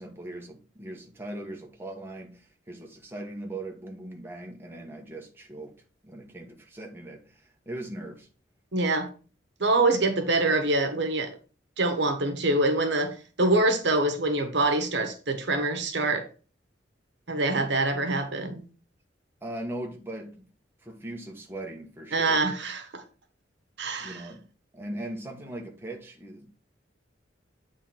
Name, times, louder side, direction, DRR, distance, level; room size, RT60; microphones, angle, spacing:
voice 1, 0.0-5.7 6.0-8.3 19.4-20.5 20.8-22.4 24.0-24.4 24.7-26.5, right 1 dB, 10° right, 1.2 m, -39 dB
voice 2, 8.7-9.1 9.6-11.3 11.8-16.3 17.3-18.6 22.1-23.0 23.8-24.3, right 2 dB, 65° right, 1.2 m, -25 dB
8.3 x 3.6 x 4.3 m
head